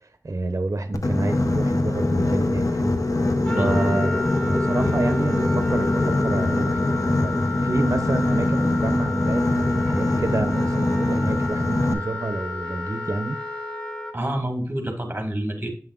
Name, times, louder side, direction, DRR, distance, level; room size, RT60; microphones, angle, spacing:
voice 1, 0.0-3.0 3.5-13.4, right 2 dB, 60° right, 0.6 m, -28 dB
Boat Water vehicle, 0.9-11.9, left 2 dB, 75° left, 0.7 m, -23 dB
sound 1, 2.0-10.3, left 3 dB, 45° left, 1.1 m, -33 dB
Wind instrument woodwind instrument, 3.4-14.1, left 3 dB, 20° left, 1.2 m, -32 dB
voice 2, 14.1-15.7, right 1 dB, 30° right, 1.7 m, -28 dB
7.3 x 5.5 x 2.4 m
wide cardioid pair, 40°, 6 cm